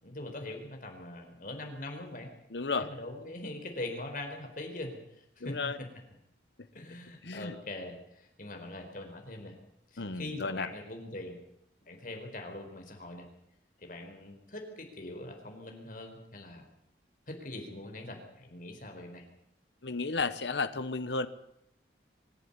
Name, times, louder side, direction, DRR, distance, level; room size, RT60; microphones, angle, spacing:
voice 1, 0.0-2.3 2.8-5.9 6.7-9.5 9.9-11.4 11.9-13.3 13.8-16.6 17.3-19.2, left 2 dB, 50° left, 4 dB, 4.4 m, -42 dB
voice 2, 2.5-2.9 5.4-5.8 7.2-7.5 10.0-10.7 19.8-21.3, left 4 dB, 70° left, 12 dB, 1.0 m, -33 dB
24.5 x 11.5 x 9.7 m, 0.78 s
head